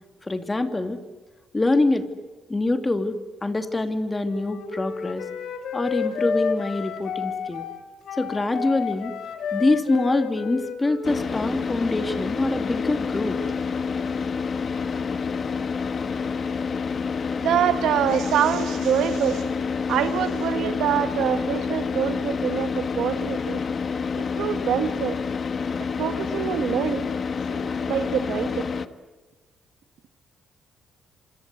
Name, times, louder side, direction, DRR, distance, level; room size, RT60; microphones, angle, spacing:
voice 1, 0.2-1.0 1.5-2.1 2.5-5.3 5.7-7.7 8.2-9.1 9.5-13.4, left 2 dB, 20° left, 8 dB, 2.7 m, -25 dB
Wind instrument woodwind instrument, 4.2-11.7, left 6 dB, 70° left, 3.5 m, -31 dB
Car / Idling, 11.0-28.9, left 5 dB, 45° left, 1.3 m, -28 dB
voice 2, 17.4-19.5 19.9-23.6 24.2-25.2 25.8-27.1 27.5-28.9, right 10 dB, 80° right, 9 dB, 1.9 m, -25 dB
27.0 x 26.5 x 8.3 m, 1.2 s
cardioid pair, 90°, 0 cm